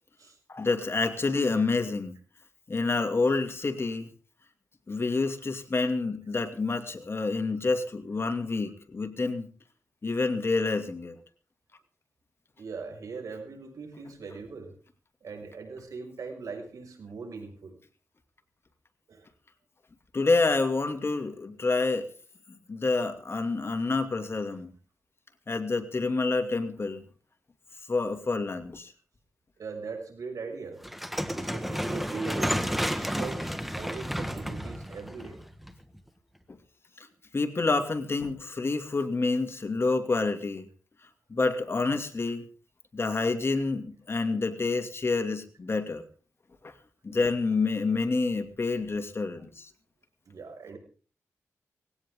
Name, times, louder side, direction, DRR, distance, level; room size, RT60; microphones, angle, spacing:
voice 1, 0.5-2.1 2.7-4.1 4.9-9.5 10.0-11.2 20.1-22.1 22.7-24.7 25.5-27.0 27.9-28.9 32.9-33.1 37.0-37.1 37.3-40.7 41.3-42.4 42.9-46.0 46.6-46.7 47.0-49.7, left 3 dB, 45° left, 6 dB, 2.4 m, -28 dB
voice 2, 12.6-14.8 15.2-17.8 19.1-19.3 29.6-30.8 31.3-32.7 33.0-35.4 50.3-50.8, right 4 dB, 80° right, 3 dB, 6.3 m, -40 dB
sound 1, 30.8-36.0, equal, ahead, 1.6 m, -31 dB
19.5 x 17.0 x 3.7 m, 0.40 s
cardioid pair, 70°, 6 cm